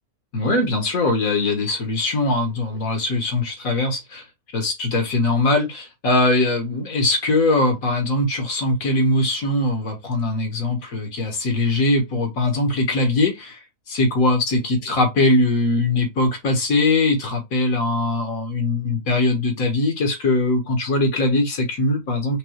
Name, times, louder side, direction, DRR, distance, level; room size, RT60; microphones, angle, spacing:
voice 1, 0.3-4.2 4.5-13.6 13.9-22.4, left 2 dB, 65° left, 1.8 m, -21 dB
5.2 x 2.3 x 3.1 m
omnidirectional pair, 1.6 m